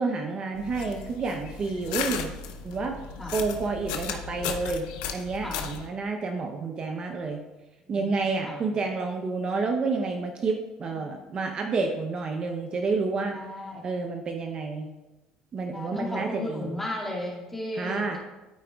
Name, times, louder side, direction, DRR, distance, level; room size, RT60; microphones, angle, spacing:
voice 1, 0.0-2.3 2.6-3.0 3.3-4.9 5.1-7.4 7.9-13.4 13.8-14.9 15.5-16.8 17.8-18.2, right 4 dB, 40° right, 3 dB, 0.7 m, -29 dB
sound 1, 0.5-5.9, left 7 dB, 90° left, 0.7 m, -35 dB
voice 2, 13.3-13.8 15.7-18.2, left 1 dB, 10° left, -3 dB, 2.1 m, -35 dB
12.5 x 4.7 x 2.3 m, 1.1 s
supercardioid pair, 105°, 2 cm